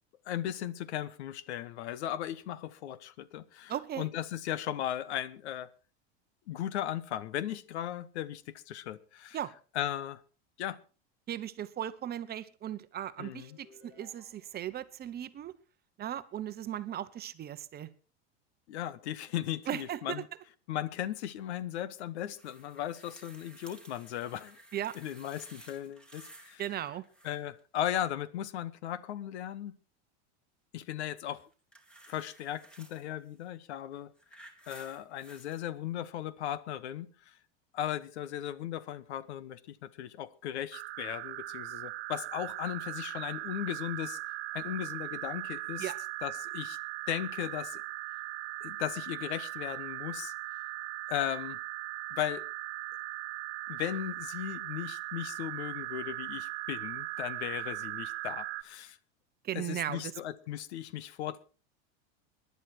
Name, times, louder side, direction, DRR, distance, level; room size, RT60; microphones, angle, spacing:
voice 1, 0.2-5.7 6.5-9.4 9.7-10.2 10.6-10.8 13.2-13.6 18.7-20.3 20.7-24.6 24.9-26.6 27.2-29.7 30.7-31.4 32.1-34.1 34.7-37.3 37.7-44.2 44.5-45.9 46.2-46.8 47.1-47.8 48.6-50.3 51.1-51.6 52.1-52.4 53.7-59.0 59.5-61.4, left 11 dB, 85° left, 1.2 m, -37 dB
voice 2, 3.7-4.1 9.3-9.5 11.3-15.5 16.0-17.9 19.7-20.2 24.7-25.0 26.6-27.0 45.8-46.0 59.4-60.1, right 11 dB, 30° right, 0.9 m, -37 dB
sound 1, 13.4-14.9, left 4 dB, 45° left, 5.4 m, -60 dB
sound 2, 22.4-26.6 26.9-27.6 31.3-33.0 33.8-35.6 36.5-36.6, right 1 dB, 5° left, 2.5 m, -55 dB
sound 3, 40.7-58.6, right 19 dB, 75° right, 0.8 m, -39 dB
18.5 x 11.0 x 4.4 m
supercardioid pair, 125°, 33 cm